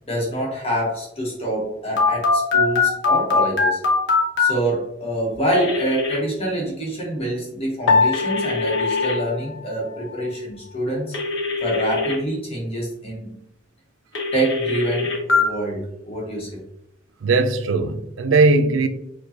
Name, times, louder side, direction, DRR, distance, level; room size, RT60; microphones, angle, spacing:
voice 1, 0.1-3.8 4.4-11.1 11.6-13.4 14.3-16.6, right 1 dB, 30° left, 1.0 m, -26 dB
Telephone, 2.0-4.5 5.5-6.2 8.1-9.1 11.1-12.2 14.2-15.4, left 4 dB, 65° left, 1.0 m, -21 dB
Piano, 7.9-10.4, left 4 dB, 85° left, 0.4 m, -23 dB
voice 2, 17.2-18.9, right 3 dB, 85° right, 0.4 m, -18 dB
4.7 x 2.2 x 2.8 m
head